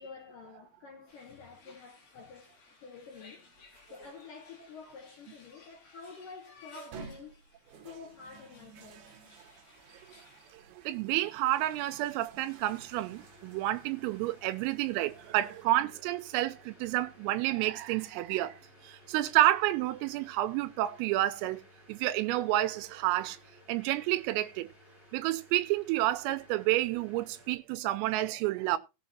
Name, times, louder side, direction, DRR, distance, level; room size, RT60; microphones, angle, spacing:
voice 1, 0.0-3.5 3.9-7.4 7.8-9.1, left 5 dB, 85° left, 1.8 m, -49 dB
sound 1, 1.1-10.5, left 4 dB, 45° left, 4.7 m, -59 dB
sound 2, 3.7-4.2 4.9-5.0 6.7-15.6, right 5 dB, 60° right, 2.8 m, -53 dB
voice 2, 10.7-18.6 18.8-21.6 21.9-23.4 23.7-24.7 25.1-28.8, right 15 dB, 85° right, 3.5 m, -29 dB
sound 3, 12.6-27.5, left 1 dB, 10° left, 5.2 m, -58 dB
18.5 x 7.3 x 2.8 m
omnidirectional pair, 5.9 m